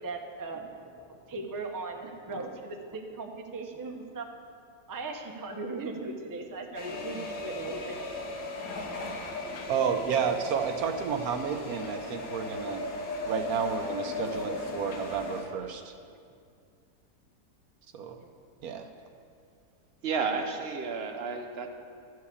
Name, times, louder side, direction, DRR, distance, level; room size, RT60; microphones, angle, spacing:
voice 1, 0.0-4.3 4.9-8.2 9.5-9.6 18.2-18.3, right 3 dB, 20° right, 2 dB, 0.5 m, -38 dB
sound 1, 6.7-15.4, left 3 dB, 85° left, 1.7 m, -37 dB
voice 2, 9.7-12.9 13.2-15.9 17.9-18.2 18.6-18.8, right 6 dB, 70° right, 6 dB, 1.1 m, -31 dB
voice 3, 20.0-21.7, right 5 dB, 50° right, 5 dB, 0.9 m, -31 dB
12.5 x 4.8 x 8.3 m, 2.3 s
omnidirectional pair, 1.7 m